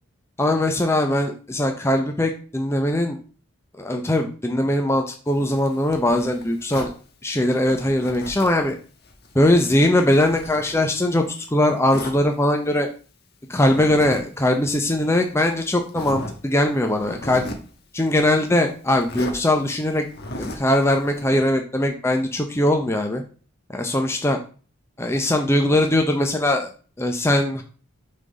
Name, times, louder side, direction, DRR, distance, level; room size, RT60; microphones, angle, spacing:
voice 1, 0.4-3.2 3.8-6.9 7.2-8.7 9.3-11.2 11.5-12.9 13.5-17.4 17.9-20.0 20.4-23.2 23.7-24.4 25.0-26.7 27.0-27.6, left 1 dB, 10° left, 4 dB, 0.5 m, -20 dB
Zipper (clothing), 5.3-7.0 7.6-8.7 9.0-11.3 11.9-12.2 13.6-14.2 14.5-14.6 15.3-15.4 15.9-16.4 16.9-17.7 19.0-19.4 20.1-20.7, left 1 dB, 45° left, 1.2 m, -35 dB
6.4 x 3.8 x 5.1 m, 0.39 s
head